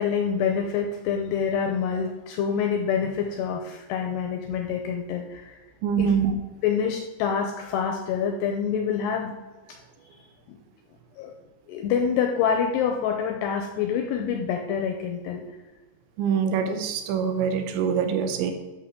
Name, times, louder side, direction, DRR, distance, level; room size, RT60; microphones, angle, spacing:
voice 1, 0.0-5.6 6.0-6.1 6.6-9.3 10.5-10.6 11.2-11.4 11.7-15.4, left 7 dB, 80° left, 3 dB, 2.4 m, -26 dB
voice 2, 5.8-6.3 16.2-18.5, right 7 dB, 85° right, 6 dB, 2.9 m, -24 dB
12.5 x 6.4 x 3.7 m, 1.2 s
omnidirectional pair, 5.5 m